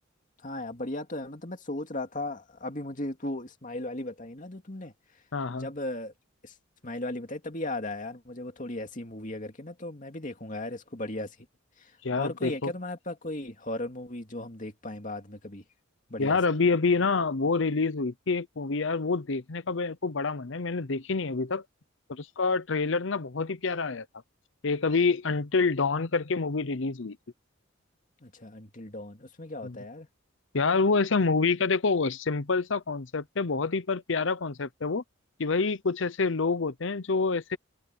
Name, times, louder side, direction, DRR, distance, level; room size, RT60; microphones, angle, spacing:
voice 1, 0.4-4.9 5.5-6.1 6.4-6.5 6.8-11.4 11.8-11.9 12.2-15.6 16.1-16.4 28.2-30.1, left 1 dB, 40° left, 2.5 m, -36 dB
voice 2, 5.3-5.7 12.0-12.7 16.2-21.6 22.1-24.1 24.6-27.2 29.6-29.8 30.5-35.0 35.4-37.6, left 4 dB, 65° left, 0.7 m, -27 dB
head